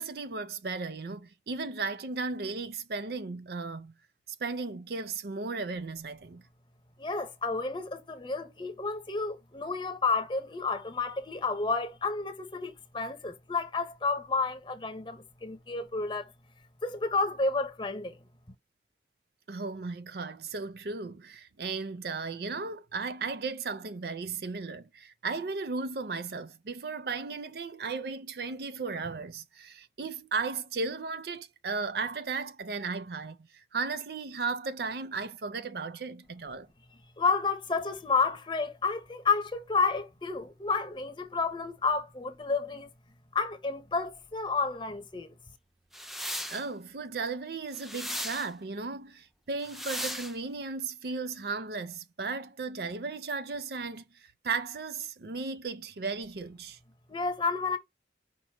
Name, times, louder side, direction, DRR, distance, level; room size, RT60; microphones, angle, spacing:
voice 1, 0.0-3.9 4.4-6.4 19.5-33.4 33.7-36.7 46.5-54.0 54.4-56.8, right 4 dB, 60° right, 0.5 m, -35 dB
voice 2, 7.0-16.3 16.8-18.2 37.2-42.9 43.3-45.3 57.1-57.8, left 4 dB, 25° left, 0.8 m, -30 dB
sound 1, 45.9-46.6 47.7-48.5 49.6-50.3, equal, ahead, 0.4 m, -36 dB
5.2 x 2.1 x 4.4 m
head